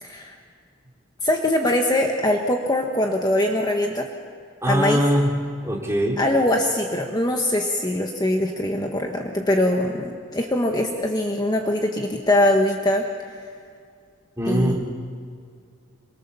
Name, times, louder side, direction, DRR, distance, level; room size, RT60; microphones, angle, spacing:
voice 1, 0.0-0.4 1.2-4.1 4.7-5.0 6.2-13.0 13.3-13.4 14.5-14.8, left 1 dB, 20° left, 2 dB, 1.5 m, -22 dB
voice 2, 4.6-5.3 5.6-6.2 14.4-14.9, equal, 15° right, -1 dB, 3.4 m, -21 dB
27.0 x 24.0 x 7.0 m, 2.2 s
head